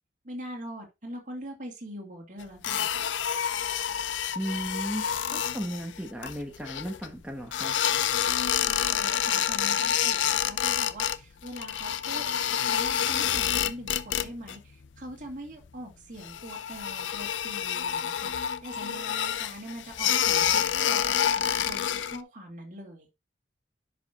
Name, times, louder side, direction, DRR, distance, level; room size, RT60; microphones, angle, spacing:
voice 1, 0.2-3.0 8.6-18.3 18.6-23.1, equal, 45° right, 1 dB, 2.3 m, -42 dB
sound 1, 2.6-7.1 7.5-11.2 11.4-14.6 14.8-15.3 15.6-15.7 16.2-22.2, left 9 dB, 85° left, 0.5 m, -28 dB
voice 2, 4.3-7.8, equal, 5° right, 1 dB, 1.0 m, -35 dB
10.5 x 5.3 x 2.8 m, 0.24 s
head